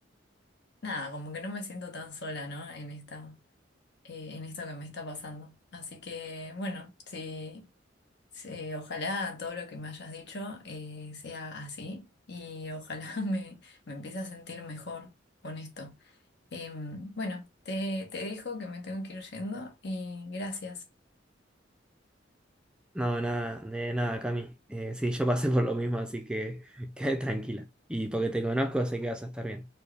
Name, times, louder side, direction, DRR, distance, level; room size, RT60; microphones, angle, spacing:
voice 1, 0.8-3.4 4.0-7.7 8.3-15.1 15.4-16.0 16.5-20.8, left 2 dB, 60° left, 1.1 m, -38 dB
voice 2, 22.9-29.7, right 1 dB, 5° right, 0.4 m, -30 dB
4.3 x 2.2 x 3.3 m
head